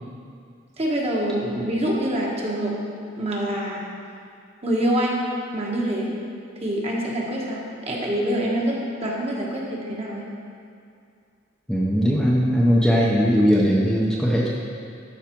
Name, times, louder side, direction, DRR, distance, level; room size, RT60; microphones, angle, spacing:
voice 1, 0.8-2.8 3.2-3.9 4.6-5.2 5.5-6.1 6.6-10.3, right 1 dB, 35° right, -3 dB, 1.4 m, -25 dB
voice 2, 11.7-14.5, equal, 5° left, -5 dB, 0.7 m, -19 dB
12.0 x 4.8 x 4.5 m, 2.3 s
head